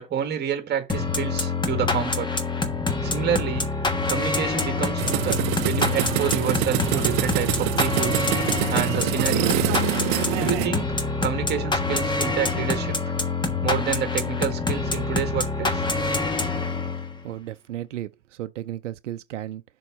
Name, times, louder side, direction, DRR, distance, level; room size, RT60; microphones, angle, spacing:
voice 1, 0.0-2.3 3.0-3.7 4.1-9.7 10.4-11.0 11.2-13.0 13.6-15.8, right 8 dB, 30° right, 1.9 m, -29 dB
sound 1, 0.9-17.2, left 3 dB, 15° left, 1.3 m, -26 dB
sound 2, 5.0-10.7, right 17 dB, 50° right, 0.7 m, -25 dB
voice 2, 17.2-19.6, right 12 dB, 90° right, 0.6 m, -34 dB
6.9 x 3.9 x 6.1 m
hypercardioid pair, 105°, 35 cm